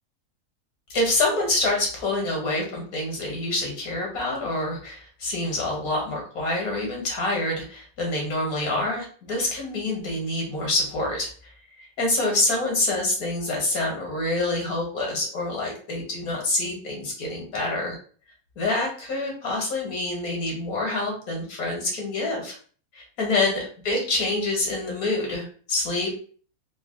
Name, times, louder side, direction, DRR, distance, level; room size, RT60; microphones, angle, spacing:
voice 1, 0.9-11.3 11.8-18.0 18.6-22.6 22.9-26.1, left 2 dB, 90° left, 0 dB, 1.9 m, -26 dB
3.7 x 2.3 x 3.7 m, 0.44 s
omnidirectional pair, 1.5 m